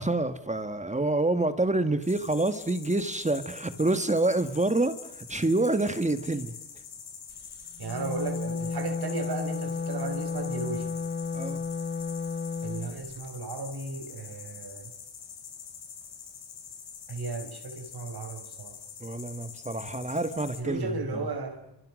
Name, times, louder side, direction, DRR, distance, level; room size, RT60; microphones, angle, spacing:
voice 1, 0.0-6.5 11.3-11.6 19.0-21.3, right 2 dB, 15° right, 10 dB, 1.6 m, -27 dB
sound 1, 2.0-20.6, left 7 dB, 90° left, 7.1 m, -45 dB
Wind instrument woodwind instrument, 7.7-12.9, left 5 dB, 25° left, 1.5 m, -32 dB
voice 2, 7.8-10.9 12.6-14.9 17.1-18.7 20.6-21.6, right 3 dB, 60° right, 5 dB, 5.5 m, -35 dB
29.0 x 27.0 x 6.3 m, 0.90 s
wide cardioid pair, 130°, 43 cm